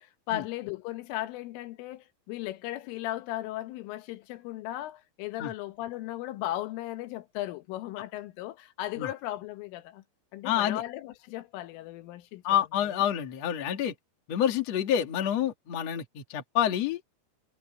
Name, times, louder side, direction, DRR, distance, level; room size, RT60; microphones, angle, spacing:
voice 1, 0.0-10.0 10.3-12.4 12.9-13.1, left 15 dB, 85° left, 3.7 m, -36 dB
voice 2, 10.4-10.8 12.4-13.9 14.3-17.0, left 10 dB, 45° left, 2.5 m, -28 dB
omnidirectional pair, 5.6 m